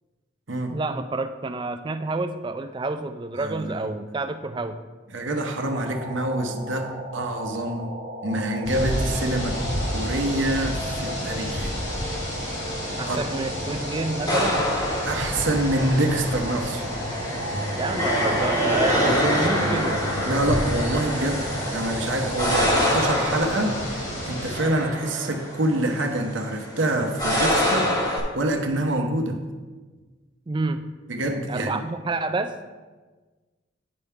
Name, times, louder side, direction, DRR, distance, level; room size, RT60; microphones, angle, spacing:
voice 1, 0.7-4.8 13.0-14.7 17.8-20.1 30.5-30.9 31.5-32.6, right 3 dB, 25° right, 9 dB, 0.3 m, -29 dB
voice 2, 3.4-4.0 5.1-7.9 8.2-9.6 9.9-12.2 13.1-13.2 15.0-16.8 18.8-19.8 20.2-21.4 21.7-29.4 31.1-31.8, right 1 dB, 65° right, 4 dB, 0.9 m, -26 dB
sound 1, 5.6-23.9, right 1 dB, 40° right, 1.1 m, -37 dB
sound 2, 8.6-24.6, equal, 75° left, 2.7 m, -31 dB
sound 3, 14.3-28.2, equal, 20° left, 1.1 m, -26 dB
9.5 x 3.6 x 5.5 m, 1.3 s
head